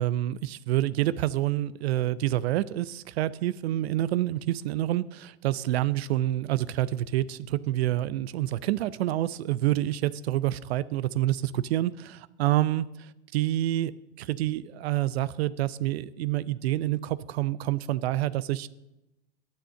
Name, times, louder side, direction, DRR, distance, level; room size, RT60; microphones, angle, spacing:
voice 1, 0.0-13.9 14.2-18.7, right 14 dB, 65° right, 18 dB, 0.5 m, -27 dB
9.7 x 6.5 x 8.5 m, 0.95 s
hypercardioid pair, 105°, 33 cm